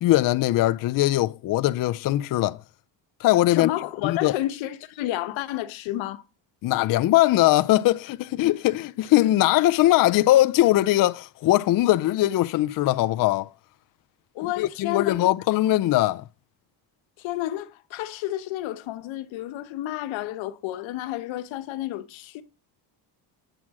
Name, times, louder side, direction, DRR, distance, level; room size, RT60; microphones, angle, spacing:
voice 1, 0.0-2.6 3.2-3.7 4.0-4.3 6.6-13.5 14.6-16.2, left 15 dB, 50° left, 0.4 m, -21 dB
voice 2, 3.5-6.2 14.3-15.2 17.2-22.4, left 14 dB, 90° left, 1.1 m, -31 dB
8.8 x 7.4 x 4.7 m
cardioid pair, 125°, 45 cm